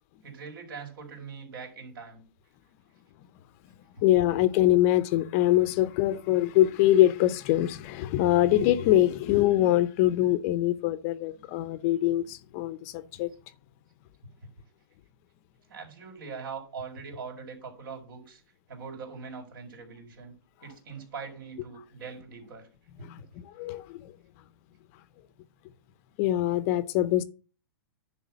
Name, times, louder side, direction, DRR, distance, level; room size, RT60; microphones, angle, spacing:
voice 1, 0.2-2.2 4.0-4.1 14.4-14.5 15.7-18.4 18.7-20.3 20.6-22.7, right 5 dB, 60° right, 4.2 m, -42 dB
voice 2, 4.0-13.3 23.5-24.1 26.2-27.2, left 14 dB, 35° left, 0.7 m, -23 dB
10.5 x 3.6 x 7.2 m
hypercardioid pair, 145°, 12 cm